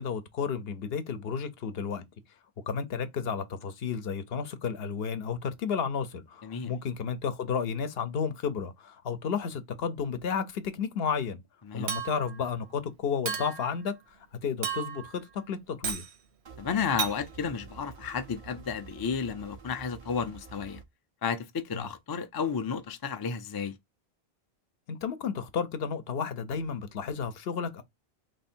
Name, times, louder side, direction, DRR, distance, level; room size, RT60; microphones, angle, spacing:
voice 1, 0.0-2.0 2.7-11.4 11.7-14.0 14.4-16.0 21.7-21.9 24.9-27.8, left 6 dB, 70° left, 0.9 m, -32 dB
voice 2, 6.4-6.7 11.7-11.9 16.6-20.8 21.2-23.8, left 6 dB, 35° left, 0.4 m, -32 dB
Chink clink, 11.9-12.4 13.3-13.7 14.6-15.1 15.8-16.1 17.0-17.2, right 8 dB, 90° right, 1.1 m, -33 dB
sound 1, 16.5-20.8, right 5 dB, 40° right, 0.5 m, -49 dB
3.3 x 3.2 x 4.3 m
omnidirectional pair, 1.1 m